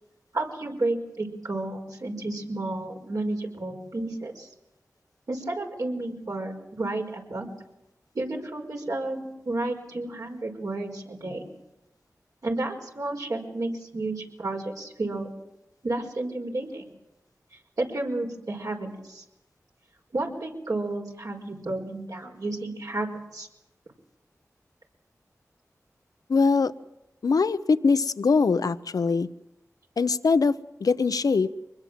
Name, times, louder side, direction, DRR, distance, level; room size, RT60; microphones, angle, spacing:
voice 1, 0.3-4.5 5.3-7.5 8.2-11.5 12.4-15.3 15.8-16.9 17.8-19.2 20.1-23.5, right 2 dB, 70° right, 1 dB, 5.2 m, -31 dB
voice 2, 26.3-26.7 27.2-29.3 30.0-30.5 30.8-31.5, left 4 dB, 80° left, 12 dB, 0.8 m, -22 dB
24.5 x 20.5 x 7.5 m, 0.90 s
cardioid pair, 40°, 6 cm